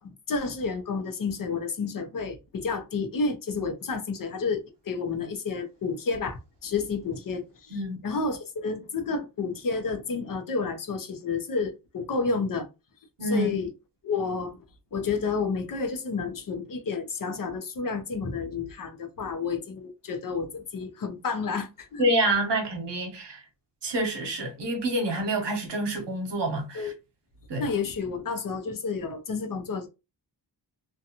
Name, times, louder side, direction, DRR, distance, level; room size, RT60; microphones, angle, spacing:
voice 1, 0.0-12.7 13.2-13.7 14.0-14.6 14.9-22.1 26.7-26.9 27.6-29.9, left 4 dB, 50° left, 0.6 m, -30 dB
voice 2, 13.2-13.6 22.0-23.4 23.8-26.9 27.5-27.7, right 1 dB, 80° right, 0.8 m, -27 dB
2.6 x 2.2 x 2.8 m
wide cardioid pair, 160°, 42 cm